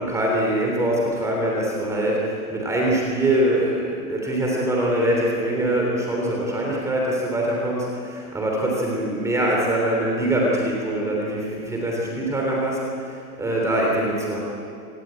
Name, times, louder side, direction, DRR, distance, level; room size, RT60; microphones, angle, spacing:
voice 1, 0.1-14.4, right 1 dB, 5° right, -2 dB, 3.4 m, -23 dB
26.0 x 20.5 x 9.0 m, 2.5 s
hypercardioid pair, 170°, 45 cm